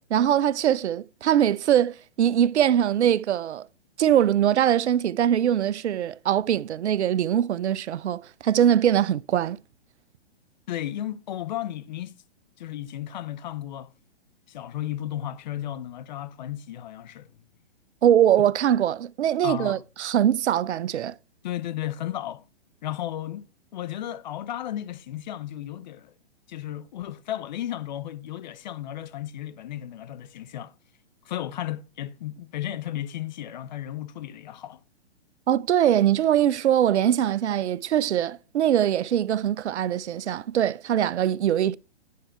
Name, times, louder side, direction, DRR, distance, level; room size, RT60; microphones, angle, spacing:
voice 1, 0.0-3.7 4.0-9.6 18.0-21.2 35.5-41.8, right 10 dB, 80° right, 0.5 m, -22 dB
voice 2, 10.7-12.2 12.6-13.9 14.5-17.3 19.4-19.8 21.4-22.4 22.8-23.5 23.7-26.1 26.5-30.7 31.3-34.8, left 12 dB, 45° left, 0.5 m, -34 dB
9.3 x 5.5 x 4.4 m
hypercardioid pair, 130°, 34 cm